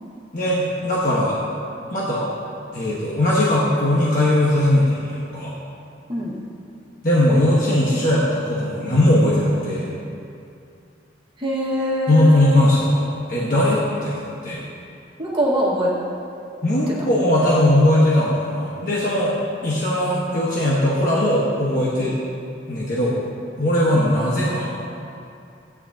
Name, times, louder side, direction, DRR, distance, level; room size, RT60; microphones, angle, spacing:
voice 1, 0.3-1.4 1.9-2.3 2.7-5.5 7.0-9.9 12.1-14.6 16.6-19.3 19.6-22.1 22.7-23.2 23.6-24.7, left 1 dB, 45° left, -7 dB, 1.4 m, -19 dB
voice 2, 11.4-12.6 15.2-15.9 17.0-17.1 19.9-20.1 21.9-22.0 23.8-24.0, equal, 25° right, -6 dB, 1.8 m, -23 dB
15.5 x 9.7 x 2.9 m, 2.6 s
head